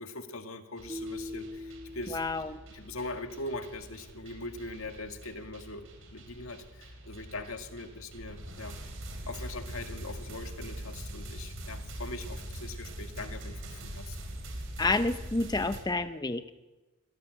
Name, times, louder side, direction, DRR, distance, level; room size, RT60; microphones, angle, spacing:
voice 1, 0.0-2.2 2.5-8.8 9.3-14.2, left 2 dB, 85° left, 6 dB, 2.0 m, -41 dB
sound 1, 0.8-15.8, right 1 dB, 75° right, 4.7 m, -43 dB
sound 2, 0.9-3.1, left 1 dB, 20° right, 1.5 m, -42 dB
voice 2, 2.1-2.6 14.8-16.4, left 2 dB, 20° left, 10 dB, 0.7 m, -29 dB
25.5 x 16.0 x 8.1 m, 1.2 s
head